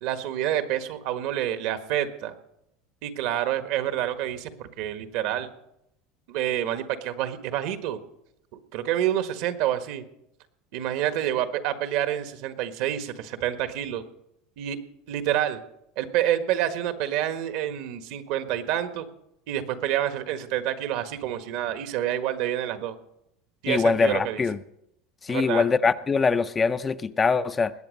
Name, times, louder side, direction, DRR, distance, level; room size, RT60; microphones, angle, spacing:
voice 1, 0.0-2.3 3.0-5.5 6.3-8.0 8.5-10.0 10.7-14.0 14.6-14.8 15.1-15.6 16.0-19.1 19.5-23.0 23.6-24.4 25.3-25.6, right 11 dB, 65° right, 9 dB, 1.5 m, -28 dB
voice 2, 23.7-24.6 25.2-27.7, left 5 dB, 20° left, 11 dB, 0.5 m, -23 dB
20.0 x 8.3 x 6.6 m, 0.79 s
supercardioid pair, 140°, 0 cm